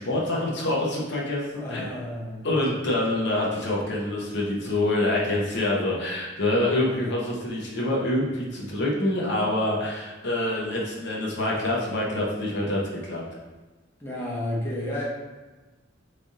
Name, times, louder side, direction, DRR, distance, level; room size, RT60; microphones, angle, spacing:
voice 1, 0.0-1.9 2.4-13.2, left 1 dB, 60° left, -3 dB, 0.8 m, -26 dB
voice 2, 1.6-2.5 6.9-7.1 14.0-15.0, left 1 dB, 15° left, -6 dB, 0.8 m, -32 dB
3.3 x 2.7 x 3.6 m, 1.2 s
head